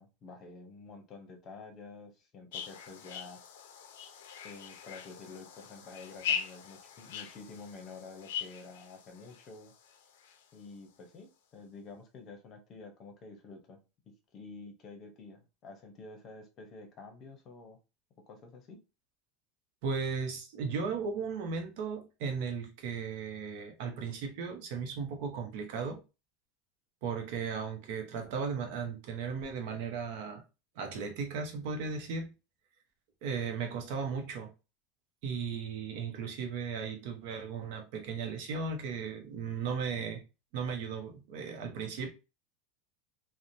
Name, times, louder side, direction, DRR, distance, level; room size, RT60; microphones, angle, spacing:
voice 1, 0.0-3.4 4.4-9.7 10.5-13.8 14.1-17.8 18.3-18.8, left 3 dB, 35° left, 0.7 m, -49 dB
sound 1, 2.5-10.7, left 8 dB, 85° left, 0.5 m, -41 dB
voice 2, 19.8-26.0 27.0-30.4 30.8-32.3 33.2-34.5 35.2-40.2 40.5-42.1, right 5 dB, 60° right, 0.7 m, -36 dB
2.8 x 2.1 x 2.5 m
supercardioid pair, 150°, 0 cm